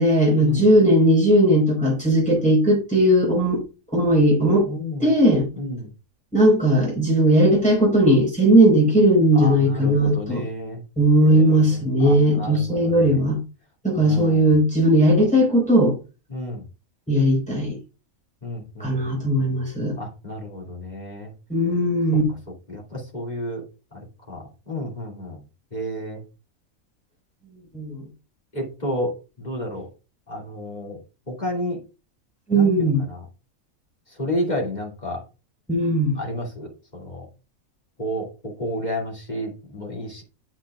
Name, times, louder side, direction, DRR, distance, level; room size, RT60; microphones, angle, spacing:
voice 1, 0.0-3.6 3.9-4.7 5.0-5.5 6.3-10.4 11.0-13.4 13.8-16.0 17.1-17.8 18.8-19.9 21.5-22.3 27.7-28.0 32.5-33.1 35.7-36.2, right 1 dB, 5° left, -3 dB, 4.7 m, -18 dB
voice 2, 4.6-5.2 5.5-5.9 9.3-10.8 11.2-13.2 13.9-14.5 16.3-16.7 18.4-19.6 20.0-21.3 22.7-23.6 23.9-24.0 24.3-25.4 25.7-26.2 28.5-29.9 30.3-31.0 31.3-31.8 32.5-33.2 34.1-35.2 36.1-37.3 38.0-40.2, equal, 30° left, -1 dB, 2.8 m, -31 dB
9.3 x 7.8 x 2.4 m, 0.31 s
omnidirectional pair, 1.4 m